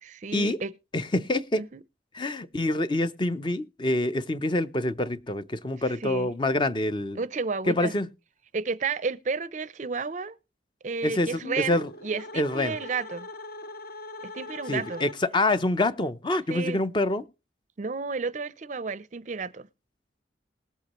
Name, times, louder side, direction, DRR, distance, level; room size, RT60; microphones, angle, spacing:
voice 1, 0.0-0.7 1.6-1.8 6.0-6.3 7.2-7.9 8.5-10.4 10.8-13.3 14.3-15.0 16.5-16.8 17.8-19.7, right 4 dB, 40° right, 0.5 m, -32 dB
voice 2, 0.9-1.6 2.1-7.2 7.7-8.1 11.0-11.9 12.4-12.8 14.7-17.3, left 2 dB, 25° left, 0.5 m, -26 dB
sound 1, 11.3-15.5, left 2 dB, 55° left, 0.9 m, -41 dB
20.0 x 8.3 x 2.9 m
head